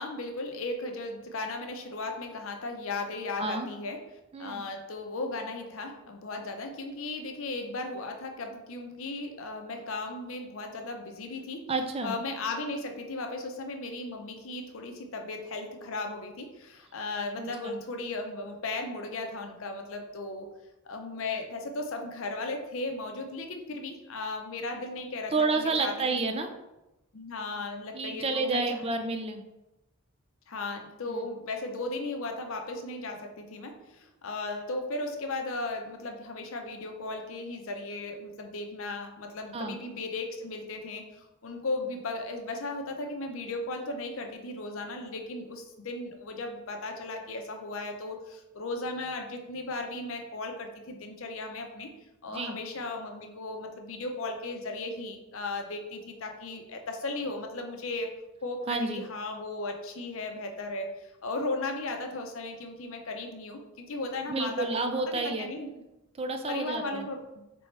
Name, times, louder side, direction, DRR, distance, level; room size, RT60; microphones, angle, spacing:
voice 1, 0.0-4.0 4.4-11.7 12.0-20.5 20.8-25.9 27.1-28.9 30.5-41.0 41.4-51.9 52.2-58.1 58.4-65.7 66.5-67.4, left 2 dB, 60° left, 4 dB, 0.6 m, -36 dB
voice 2, 11.7-12.1 17.4-17.8 25.3-26.5 27.9-29.4 31.1-31.3 39.5-39.7 52.3-52.6 58.7-59.0 64.3-65.5 66.2-67.1, right 3 dB, 25° right, 5 dB, 0.4 m, -30 dB
4.2 x 3.4 x 3.2 m, 0.98 s
head